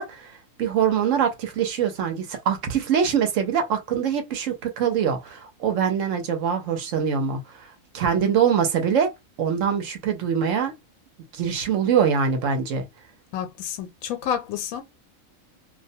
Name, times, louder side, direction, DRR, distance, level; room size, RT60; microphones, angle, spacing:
voice 1, 0.0-9.1 9.4-10.7 11.3-12.9, right 7 dB, 70° right, 1.0 m, -24 dB
voice 2, 13.3-14.8, left 8 dB, 90° left, 1.0 m, -29 dB
2.6 x 2.1 x 2.7 m
omnidirectional pair, 1.4 m